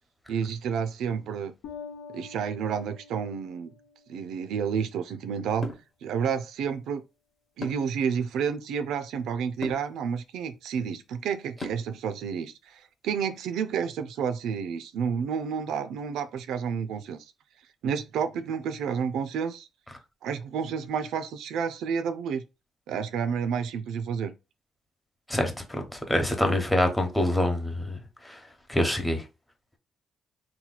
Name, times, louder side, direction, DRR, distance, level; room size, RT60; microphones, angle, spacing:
voice 1, 0.3-1.5 2.1-3.7 4.1-5.7 6.0-7.0 7.6-17.2 17.8-19.7 20.2-22.4 22.9-24.3, right 7 dB, 80° right, 0.4 m, -30 dB
Bass guitar, 1.6-4.3, left 5 dB, 85° left, 0.6 m, -45 dB
sound 1, 5.6-5.9 7.6-8.0 9.6-9.9 11.6-12.0, left 1 dB, 35° left, 1.1 m, -36 dB
voice 2, 26.1-28.0 28.7-29.2, left 1 dB, 5° left, 0.9 m, -24 dB
2.9 x 2.2 x 3.9 m
cardioid pair, 90°, 0 cm